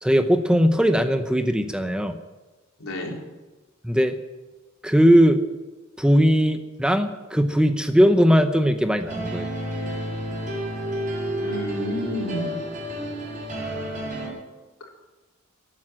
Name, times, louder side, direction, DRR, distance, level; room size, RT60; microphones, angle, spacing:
voice 1, 0.0-2.2 3.8-4.2 4.8-5.4 6.0-9.5, equal, 5° right, 7 dB, 0.7 m, -19 dB
voice 2, 2.8-3.2 11.3-12.5 14.8-14.9, equal, 85° left, -1 dB, 4.0 m, -30 dB
sound 1, 9.0-14.3, right 1 dB, 40° right, 7.1 m, -30 dB
18.5 x 9.1 x 7.6 m, 1.2 s
head